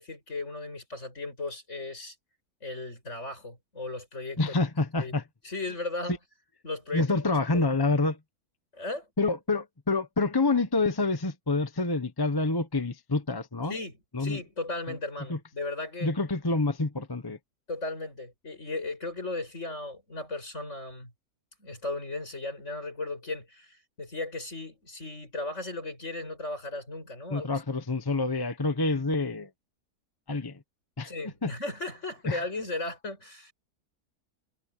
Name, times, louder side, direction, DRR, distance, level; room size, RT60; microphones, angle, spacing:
voice 1, 0.0-2.2 2.6-4.4 5.0-5.1 5.4-6.2 6.6-7.2 7.5-7.7 8.7-9.1 13.7-16.1 17.7-21.1 21.6-27.5 31.1-33.5, left 2 dB, 50° left, 7.3 m, -36 dB
voice 2, 4.4-5.2 6.9-8.2 9.2-13.8 14.1-14.4 15.3-15.4 16.0-17.4 27.3-29.5 30.3-30.6 31.0-31.1 31.4-31.5 32.3-32.4, left 3 dB, 20° left, 0.8 m, -27 dB
omnidirectional pair, 1.6 m